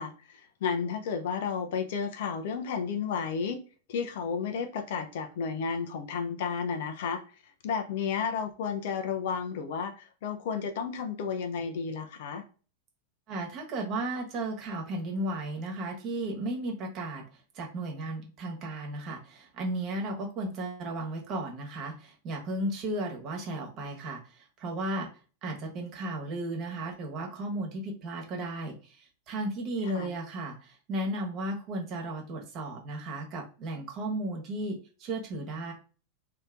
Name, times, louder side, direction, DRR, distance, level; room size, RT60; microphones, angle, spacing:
voice 1, 0.0-3.6 3.9-7.2 7.6-12.4 29.8-30.1, left 6 dB, 55° left, 6 dB, 0.6 m, -32 dB
voice 2, 13.3-17.2 17.5-25.1 25.4-35.7, right 1 dB, 35° right, 2 dB, 1.3 m, -35 dB
3.2 x 2.8 x 3.7 m, 0.37 s
figure-of-eight pair, 90°, 0 cm